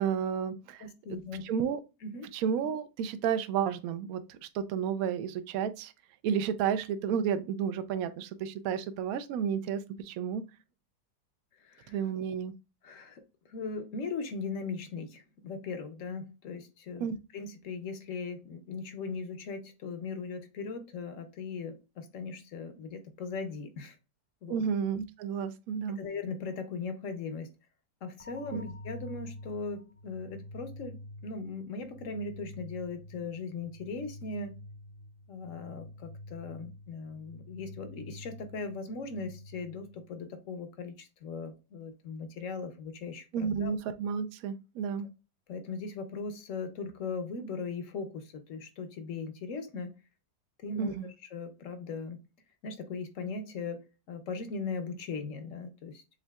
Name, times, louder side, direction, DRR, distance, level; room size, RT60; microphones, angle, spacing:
voice 1, 0.0-0.9 1.4-1.8 2.3-5.9 6.2-10.4 11.9-12.5 17.0-17.2 24.5-26.0 28.5-28.6 43.3-45.1 50.8-51.1, right 7 dB, 70° right, 1.0 m, -31 dB
voice 2, 0.8-1.4 2.0-2.3 11.6-12.0 12.8-13.2 13.5-17.1 17.3-24.0 24.4-24.6 26.0-27.5 28.0-34.6 35.3-43.7 45.5-49.9 50.6-50.9 51.2-52.2 52.6-53.8 54.1-56.0, left 4 dB, 60° left, 1.0 m, -39 dB
sound 1, 28.2-40.2, left 1 dB, 35° left, 0.6 m, -48 dB
7.2 x 2.7 x 2.3 m
omnidirectional pair, 1.7 m